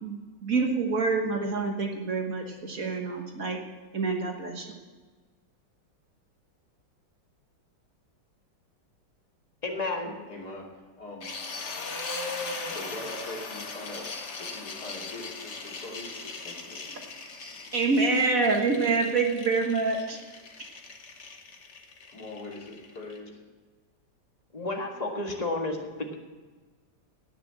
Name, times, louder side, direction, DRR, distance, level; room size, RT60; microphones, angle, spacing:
voice 1, 0.0-3.6 3.9-4.7 17.7-20.2, right 4 dB, 50° right, 2 dB, 1.8 m, -26 dB
voice 2, 9.6-10.2 24.5-26.1, left 2 dB, 20° left, 1 dB, 1.8 m, -31 dB
voice 3, 10.3-10.7 11.0-11.3 12.7-14.1 14.4-17.0 18.6-18.9 22.1-23.4, left 1 dB, 60° left, -2 dB, 3.3 m, -42 dB
sound 1, 11.2-23.2, left 3 dB, 40° left, 1.5 m, -39 dB
18.0 x 6.8 x 7.6 m, 1.4 s
omnidirectional pair, 1.9 m